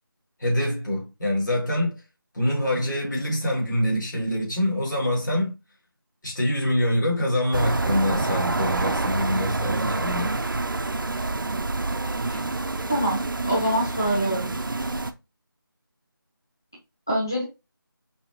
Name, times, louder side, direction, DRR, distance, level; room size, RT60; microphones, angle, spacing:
voice 1, 0.4-2.0 2.3-5.6 6.2-10.3, left 1 dB, 55° left, 2.6 m, -25 dB
sound 1, 7.5-15.1, right 2 dB, 65° right, 0.5 m, -27 dB
voice 2, 12.9-14.5 17.1-17.4, right 1 dB, 10° left, 0.7 m, -25 dB
5.4 x 2.9 x 2.8 m
figure-of-eight pair, 175°, 12 cm